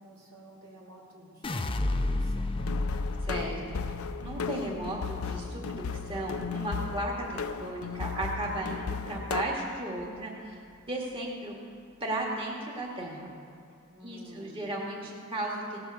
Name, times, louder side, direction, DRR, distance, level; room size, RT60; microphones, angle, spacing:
voice 1, 0.0-2.6 13.9-14.7, right 1 dB, 85° right, -4 dB, 3.2 m, -51 dB
sound 1, 1.4-7.6 8.0-8.6, left 2 dB, 25° left, 0.6 m, -33 dB
sound 2, 2.6-9.4, left 5 dB, 70° left, 0.5 m, -35 dB
voice 2, 3.3-3.8 4.2-10.6 10.9-11.5 12.0-13.3 14.0-15.8, right 1 dB, 25° right, -3 dB, 1.8 m, -35 dB
17.5 x 7.9 x 6.8 m, 2.4 s
head